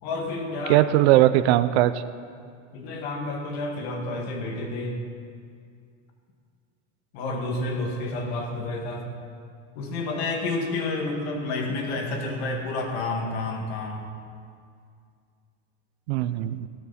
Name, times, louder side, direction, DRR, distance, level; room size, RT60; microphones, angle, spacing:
voice 1, 0.0-0.8 2.7-5.0 7.1-9.1 9.8-14.1, left 2 dB, 60° left, 2 dB, 2.1 m, -30 dB
voice 2, 0.7-2.0 16.1-16.7, right 14 dB, 60° right, 12 dB, 0.6 m, -19 dB
15.0 x 13.0 x 4.2 m, 2.2 s
supercardioid pair, 175°, 36 cm